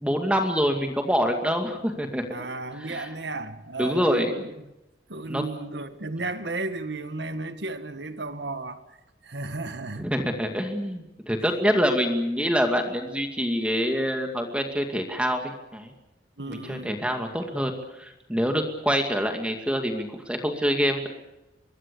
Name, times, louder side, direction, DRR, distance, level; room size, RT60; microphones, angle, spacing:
voice 1, 0.0-2.3 2.8-3.1 3.8-4.5 5.3-5.4 10.0-15.9 16.5-21.1, equal, 5° right, 2.3 m, -26 dB
voice 2, 2.3-4.7 5.1-9.0 9.2-10.1 16.4-17.0, right 2 dB, 70° right, 1.8 m, -34 dB
25.0 x 22.0 x 7.0 m
head